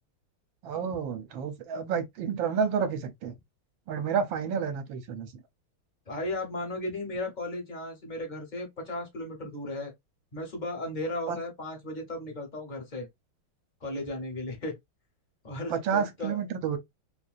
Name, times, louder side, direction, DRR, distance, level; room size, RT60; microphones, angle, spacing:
voice 1, 0.6-3.3 3.9-5.3 11.3-11.4 15.7-16.8, right 7 dB, 70° right, 1.5 m, -30 dB
voice 2, 6.1-9.9 10.3-13.1 13.8-14.8 15.4-16.4, left 1 dB, 35° left, 0.7 m, -35 dB
3.4 x 2.7 x 2.4 m
omnidirectional pair, 2.3 m